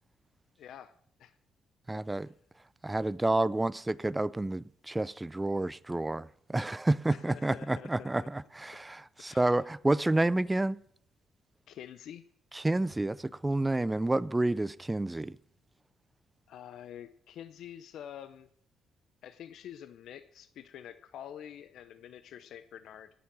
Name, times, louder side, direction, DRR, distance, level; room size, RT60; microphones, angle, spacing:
voice 1, 0.6-0.9 1.2-1.3 2.1-2.3 7.1-8.3 9.2-9.6 11.7-12.2 16.5-18.5 19.2-23.1, left 10 dB, 75° left, 0.6 m, -47 dB
voice 2, 1.9-2.3 2.8-10.8 12.5-15.4, right 2 dB, 15° right, 0.4 m, -29 dB
17.5 x 7.2 x 6.0 m
cardioid pair, 90°, 0 cm